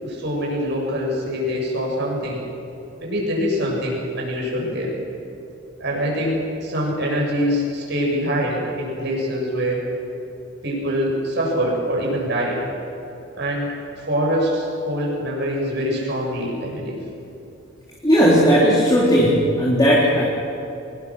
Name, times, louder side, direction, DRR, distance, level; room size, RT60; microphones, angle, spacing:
voice 1, 0.0-2.4 3.0-4.9 5.8-9.8 10.6-12.6 13.3-13.7 13.9-17.0, equal, 60° right, -2 dB, 7.8 m, -24 dB
voice 2, 18.0-20.2, equal, 20° left, -6 dB, 3.9 m, -16 dB
25.5 x 21.5 x 6.5 m, 2.9 s
head